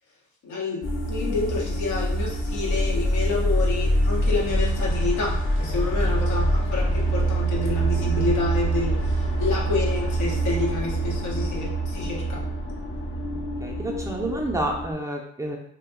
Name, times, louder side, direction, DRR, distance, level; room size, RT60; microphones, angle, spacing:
voice 1, 0.4-12.4, left 3 dB, 85° left, -3 dB, 0.9 m, -29 dB
sound 1, 0.8-14.9, right 1 dB, 40° left, 0.6 m, -25 dB
voice 2, 8.0-8.3 13.6-15.6, right 1 dB, 10° right, 0 dB, 0.4 m, -29 dB
2.4 x 2.2 x 3.5 m, 0.69 s
cardioid pair, 90°, 30 cm